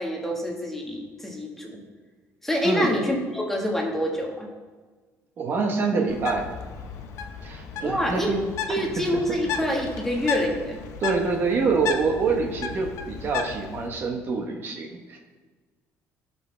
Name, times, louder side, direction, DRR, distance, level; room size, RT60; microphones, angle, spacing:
voice 1, 0.0-1.8 2.4-4.5 7.8-8.3 8.7-10.8, equal, 5° left, 0 dB, 1.6 m, -26 dB
voice 2, 5.4-6.4 7.4-8.4 11.0-15.2, right 4 dB, 45° right, 2 dB, 1.2 m, -26 dB
Bird, 6.1-13.9, left 6 dB, 70° left, 0.9 m, -34 dB
16.0 x 5.6 x 3.4 m, 1.4 s
cardioid pair, 145°, 6 cm